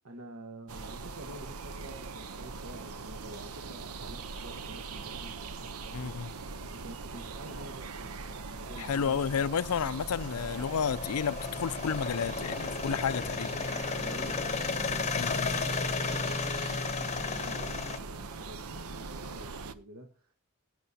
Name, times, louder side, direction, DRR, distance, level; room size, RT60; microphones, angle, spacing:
voice 1, 0.0-6.2 6.7-9.2 13.7-20.3, right 1 dB, 70° right, 1.5 m, -48 dB
sound 1, 0.7-19.7, right 4 dB, 85° right, 0.8 m, -41 dB
voice 2, 5.9-6.3 8.8-13.7 15.1-15.5, left 7 dB, 90° left, 0.5 m, -31 dB
sound 2, 9.0-18.0, left 4 dB, 30° left, 0.8 m, -34 dB
16.0 x 10.0 x 2.8 m
head